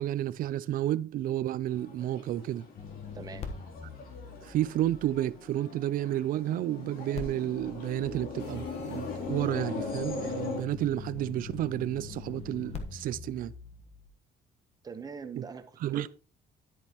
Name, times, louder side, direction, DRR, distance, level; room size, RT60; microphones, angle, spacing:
voice 1, 0.0-2.6 4.4-13.5 15.4-15.5 15.8-16.1, right 13 dB, 55° right, 0.5 m, -31 dB
sound 1, 1.7-10.6, left 4 dB, 55° left, 2.7 m, -40 dB
sound 2, 2.8-5.9 7.1-14.1, left 5 dB, 35° left, 1.2 m, -43 dB
voice 2, 3.1-3.5 14.8-16.1, right 5 dB, 20° right, 0.9 m, -42 dB
sound 3, 8.4-10.0, left 2 dB, 85° left, 3.1 m, -49 dB
10.5 x 8.5 x 3.0 m
cardioid pair, 170°, 18 cm